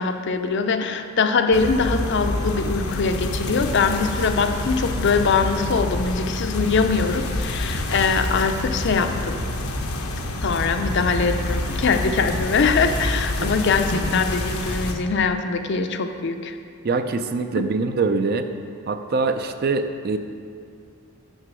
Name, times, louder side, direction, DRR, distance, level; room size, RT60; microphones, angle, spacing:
voice 1, 0.0-9.4 10.4-16.6 17.6-17.7, left 4 dB, 55° left, 7 dB, 0.5 m, -22 dB
sound 1, 1.5-14.9, left 1 dB, 90° left, 0.8 m, -27 dB
voice 2, 16.8-18.5 18.9-20.2, right 3 dB, 45° right, 8 dB, 0.4 m, -23 dB
6.7 x 6.4 x 6.1 m, 2.3 s
head